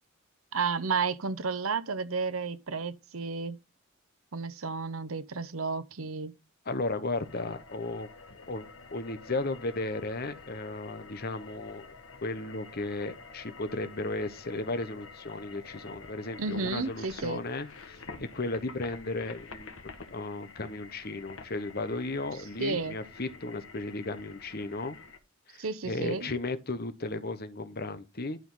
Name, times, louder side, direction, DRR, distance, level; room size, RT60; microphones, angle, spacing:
voice 1, 0.5-3.6 4.3-6.3 16.4-17.4 22.6-23.0 25.6-26.3, right 4 dB, 80° right, 0.9 m, -32 dB
voice 2, 6.7-8.1 8.5-11.9 12.2-19.7 20.1-25.0 25.5-28.4, left 2 dB, 50° left, 1.1 m, -35 dB
sound 1, 7.2-25.2, left 4 dB, 75° left, 1.5 m, -48 dB
11.5 x 5.2 x 3.9 m
head